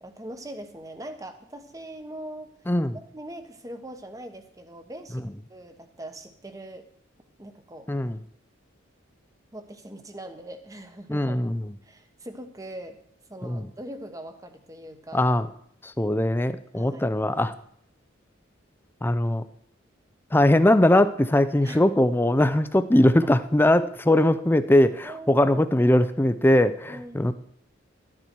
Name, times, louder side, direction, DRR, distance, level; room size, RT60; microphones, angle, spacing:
voice 1, 0.0-2.5 2.9-6.8 7.4-7.9 9.5-11.4 11.8-13.0 13.3-15.3 16.7-17.1 21.6-21.9 23.0-23.1 25.0-25.8 26.9-27.3, right 1 dB, 15° right, 8 dB, 1.0 m, -41 dB
voice 2, 7.9-8.2 11.1-11.6 13.4-13.7 15.1-15.5 15.8-17.5 19.0-19.4 20.3-27.3, left 1 dB, 10° left, 12 dB, 0.5 m, -21 dB
12.0 x 10.0 x 4.5 m, 0.67 s
head